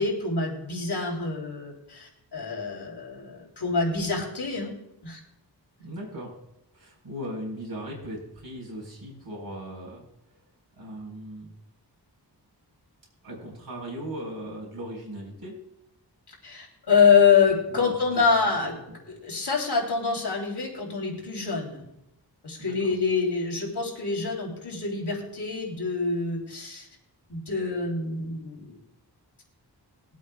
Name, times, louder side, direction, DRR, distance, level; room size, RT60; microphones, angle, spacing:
voice 1, 0.0-4.7 5.0-5.2 16.3-18.7 19.1-21.8 22.4-26.9 27.3-28.8, left 5 dB, 75° left, -1 dB, 3.3 m, -26 dB
voice 2, 5.8-6.3 6.7-10.4 10.8-11.5 13.2-15.6 17.7-19.0 22.6-22.9, equal, 60° right, -2 dB, 4.3 m, -38 dB
22.0 x 8.3 x 2.3 m, 0.85 s
wide cardioid pair, 90°, 41 cm